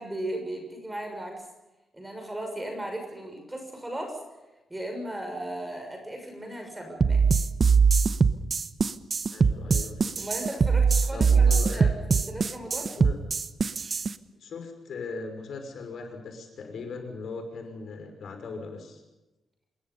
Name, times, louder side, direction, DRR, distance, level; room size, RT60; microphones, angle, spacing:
voice 1, 0.0-1.4 1.9-4.2 4.7-7.3 10.2-12.9, right 1 dB, 10° right, 3 dB, 6.5 m, -36 dB
sound 1, 7.0-14.1, right 5 dB, 35° right, 1.0 m, -22 dB
voice 2, 9.3-10.2 11.1-12.0 12.9-13.2 14.4-19.0, left 4 dB, 60° left, 5 dB, 5.7 m, -39 dB
27.5 x 22.0 x 5.5 m, 1.0 s
wide cardioid pair, 175°, 0 cm